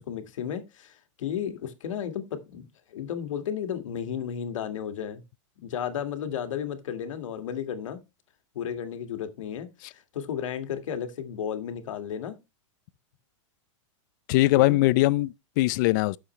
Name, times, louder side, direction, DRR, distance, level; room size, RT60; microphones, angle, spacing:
voice 1, 0.1-5.2 5.6-8.0 8.5-12.4 14.6-14.8, left 8 dB, 80° left, 1.9 m, -33 dB
voice 2, 14.3-16.2, left 18 dB, 40° left, 0.4 m, -21 dB
10.0 x 7.0 x 3.2 m
supercardioid pair, 160°, 16 cm